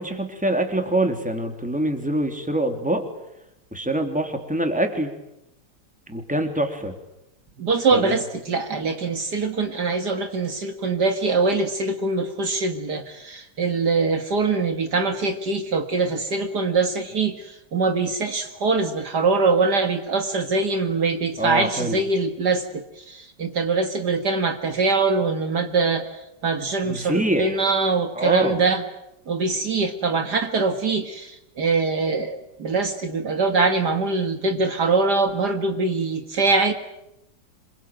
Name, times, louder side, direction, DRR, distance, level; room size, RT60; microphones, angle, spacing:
voice 1, 0.0-3.0 3.7-5.1 6.1-6.9 7.9-8.2 21.4-22.0 26.9-27.6 28.1-28.6, right 1 dB, 5° right, 4 dB, 3.2 m, -24 dB
voice 2, 7.6-28.8 29.3-36.7, right 3 dB, 60° right, 6 dB, 2.3 m, -23 dB
27.0 x 23.5 x 9.2 m, 0.85 s
omnidirectional pair, 2.0 m